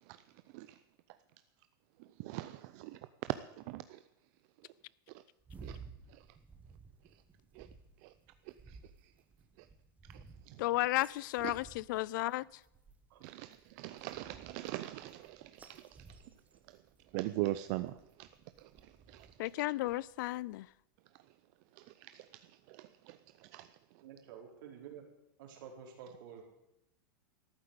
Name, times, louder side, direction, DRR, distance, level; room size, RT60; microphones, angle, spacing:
voice 1, 2.0-4.0 5.1-5.2 5.6-5.8 6.1-6.2 7.0-7.1 7.5-7.7 8.0-8.1 8.5-9.1 9.6-9.7 10.1-10.6 11.4-11.5 13.2-16.2 16.7-16.8 17.1-18.3 18.6-19.5 21.8-23.8, right 16 dB, 45° right, 0.6 m, -42 dB
sound 1, 5.4-20.6, right 4 dB, 10° right, 1.1 m, -57 dB
voice 2, 10.6-12.4 19.4-20.7, left 18 dB, 55° left, 0.4 m, -33 dB
voice 3, 24.0-25.1 25.4-26.4, right 7 dB, 60° right, 4.3 m, -50 dB
13.5 x 7.9 x 9.6 m
supercardioid pair, 145°, 12 cm